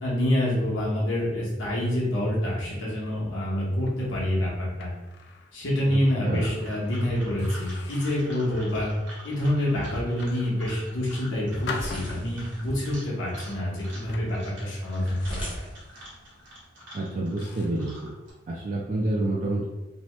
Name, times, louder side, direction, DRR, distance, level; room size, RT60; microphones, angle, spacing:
voice 1, 0.0-4.9 5.5-8.9 9.2-15.6, left 1 dB, 85° left, -6 dB, 0.9 m, -27 dB
sound 1, 3.8-5.6 6.0-6.2 6.8-6.9 7.4-8.4 9.0-9.3 10.0-11.0 11.7-12.7 13.4-15.8 16.1-16.4 16.9-17.0 17.4-17.9, left 4 dB, 60° left, 0.3 m, -43 dB
voice 2, 5.9-6.5 16.9-18.1 18.5-19.7, right 2 dB, 40° right, -4 dB, 0.3 m, -28 dB
sound 2, 6.0-18.3, equal, 70° right, 1.0 m, -47 dB
sound 3, 9.9-16.7, equal, 25° left, 0.6 m, -42 dB
2.8 x 2.2 x 3.0 m, 1.1 s
head